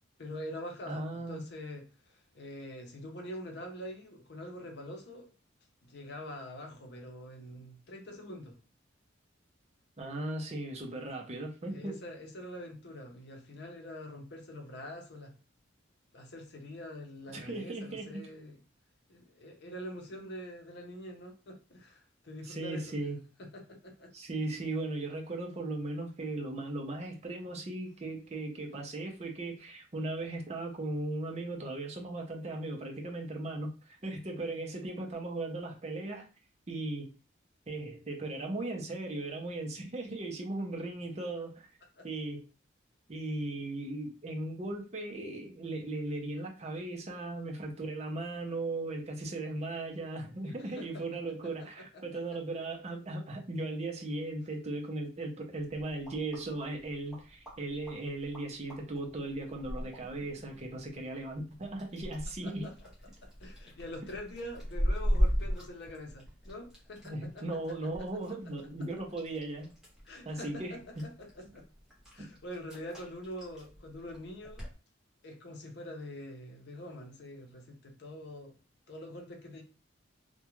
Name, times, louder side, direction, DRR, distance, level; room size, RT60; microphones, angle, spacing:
voice 1, 0.2-5.3 5.8-8.6 11.7-15.3 16.1-18.6 19.1-23.0 23.4-24.1 42.0-42.1 50.4-51.0 51.6-52.0 52.3-52.4 62.4-62.7 63.2-67.7 70.0-71.7 72.1-74.7 75.2-78.6 78.9-79.6, left 1 dB, 55° left, 0.6 m, -45 dB
voice 2, 0.9-1.4 10.0-12.0 17.3-18.2 22.4-23.2 24.1-36.3 36.7-37.1 37.7-41.7 42.0-42.4 43.1-62.7 67.0-69.7 70.3-70.8 72.2-72.3, right 2 dB, 35° right, 0.5 m, -37 dB
sound 1, 55.6-74.7, equal, 5° right, 0.8 m, -38 dB
2.3 x 2.2 x 2.9 m
head